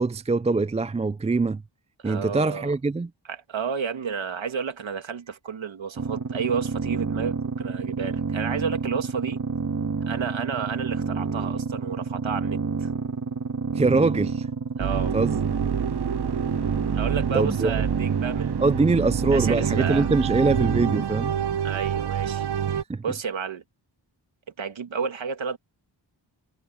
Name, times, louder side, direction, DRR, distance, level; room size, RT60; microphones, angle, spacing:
voice 1, 0.0-1.6 2.0-3.1 13.7-14.5 15.1-15.4 17.3-17.7 18.6-21.4 22.9-23.0, right 3 dB, 15° right, 0.3 m, -23 dB
voice 2, 2.0-2.7 3.3-9.4 10.1-12.9 14.8-15.1 16.9-18.8 19.3-20.1 21.6-22.5 22.7-23.6 24.6-25.6, right 6 dB, 90° right, 2.2 m, -31 dB
sound 1, 6.0-21.0, right 5 dB, 40° right, 1.7 m, -29 dB
sound 2, 14.8-22.8, right 9 dB, 60° right, 0.8 m, -28 dB
wide cardioid pair, 100°, 45 cm